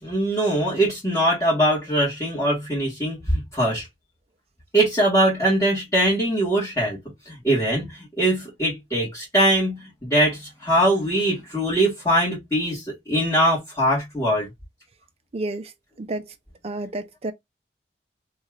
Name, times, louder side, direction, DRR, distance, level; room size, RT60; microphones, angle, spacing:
voice 1, 0.0-3.9 4.7-7.0 7.2-14.5, right 1 dB, 15° left, 1.4 m, -22 dB
voice 2, 15.3-15.7 16.0-16.3 16.6-17.3, right 2 dB, 35° right, 0.4 m, -30 dB
2.8 x 2.3 x 3.1 m
head